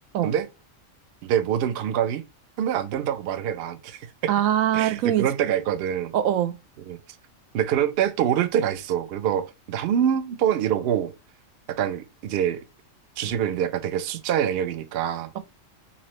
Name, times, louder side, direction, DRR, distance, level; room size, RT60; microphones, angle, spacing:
voice 1, 1.2-2.2 2.6-4.3 4.7-6.1 6.9-7.0 7.5-11.1 11.7-12.6 13.2-15.3, right 9 dB, 65° right, 0.7 m, -25 dB
voice 2, 4.3-5.3 6.1-6.5, right 11 dB, 90° right, 1.0 m, -22 dB
4.0 x 2.7 x 3.0 m
omnidirectional pair, 1.4 m